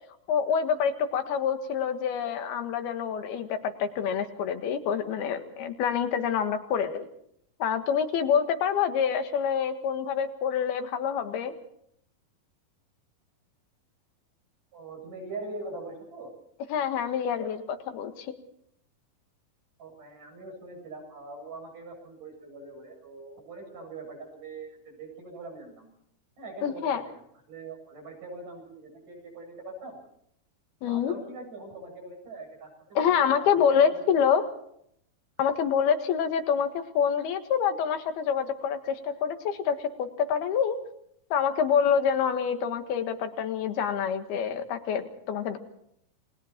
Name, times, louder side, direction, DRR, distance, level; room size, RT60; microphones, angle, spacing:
voice 1, 0.3-7.1 7.6-11.5 16.7-18.3 26.6-27.0 30.8-31.1 33.0-34.4 35.4-40.8 41.3-45.6, left 7 dB, 90° left, 7 dB, 3.7 m, -26 dB
voice 2, 14.7-16.3 19.8-25.9 26.4-27.1 27.5-30.0 30.9-34.4, right 2 dB, 55° right, 1 dB, 9.6 m, -42 dB
29.0 x 20.5 x 4.5 m, 0.71 s
omnidirectional pair, 4.3 m